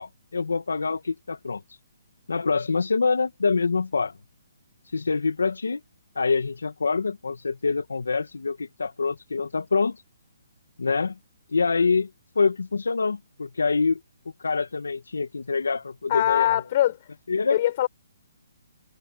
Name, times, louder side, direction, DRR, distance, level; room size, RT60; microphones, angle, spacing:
voice 1, 0.0-1.6 2.3-4.1 4.9-5.8 6.1-10.0 10.8-11.1 11.5-12.1 12.3-14.0 14.4-16.6 17.3-17.6, left 4 dB, 85° left, 1.7 m, -25 dB
voice 2, 16.1-17.0 17.5-17.9, left 13 dB, 40° left, 5.6 m, -22 dB
hypercardioid pair, 150°, 0 cm